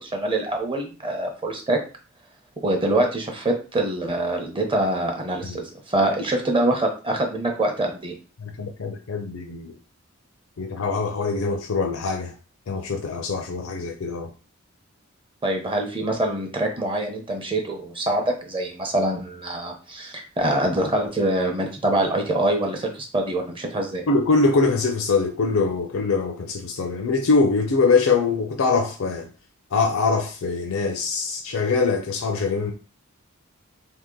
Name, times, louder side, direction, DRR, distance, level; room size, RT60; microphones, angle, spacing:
voice 1, 0.0-1.8 2.6-8.1 15.4-24.0, right 1 dB, 25° right, 0.7 m, -24 dB
voice 2, 8.4-9.7 10.6-12.3 12.7-14.3 24.1-29.3 29.7-32.7, left 4 dB, 80° left, 0.5 m, -23 dB
2.8 x 2.8 x 3.7 m
head